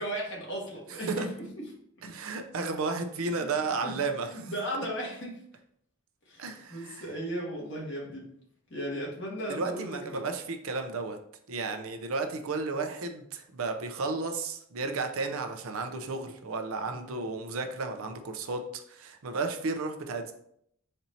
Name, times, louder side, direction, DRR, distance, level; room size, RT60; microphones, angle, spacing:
voice 1, 0.0-1.6 3.3-3.9 4.3-5.3 6.3-8.2 8.7-10.2 16.9-17.1, equal, 55° left, -3 dB, 1.5 m, -36 dB
voice 2, 2.1-4.5 6.4-7.1 9.5-11.2 11.5-20.3, right 3 dB, 80° right, 6 dB, 0.6 m, -33 dB
4.3 x 2.7 x 4.2 m, 0.70 s
head